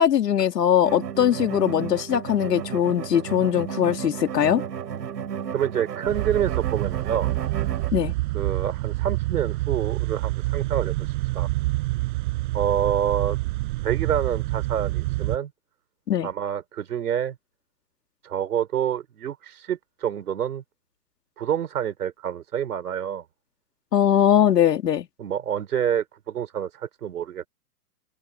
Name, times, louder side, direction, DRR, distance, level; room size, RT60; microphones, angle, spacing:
voice 1, 0.0-4.6 7.9-8.1 16.1-16.3 23.9-25.1, left 10 dB, 90° left, 2.8 m, -21 dB
sound 1, 0.8-7.9, right 8 dB, 85° right, 5.8 m, -33 dB
voice 2, 5.5-7.3 8.3-11.0 11.3-11.5 12.5-13.4 13.8-15.5 16.2-17.4 18.2-20.6 21.4-23.2 25.2-27.5, right 9 dB, 70° right, 4.7 m, -27 dB
sound 2, 6.1-15.4, right 20 dB, 30° right, 7.9 m, -27 dB
open air
hypercardioid pair, 175°, 47 cm